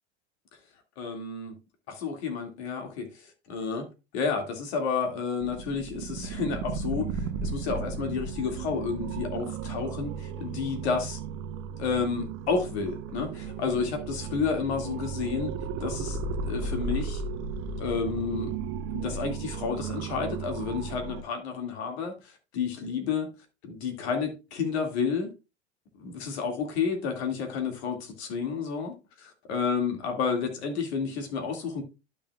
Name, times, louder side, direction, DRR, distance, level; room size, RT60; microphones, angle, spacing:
voice 1, 1.0-1.6 1.9-3.9 4.1-11.2 11.8-15.5 15.8-17.2 17.8-18.5 18.9-23.3 23.6-25.3 26.0-31.8, left 5 dB, 65° left, 2.2 m, -31 dB
sound 1, 5.4-21.2, right 5 dB, 50° right, 0.9 m, -35 dB
12.0 x 5.5 x 2.3 m
figure-of-eight pair, 80°, 34 cm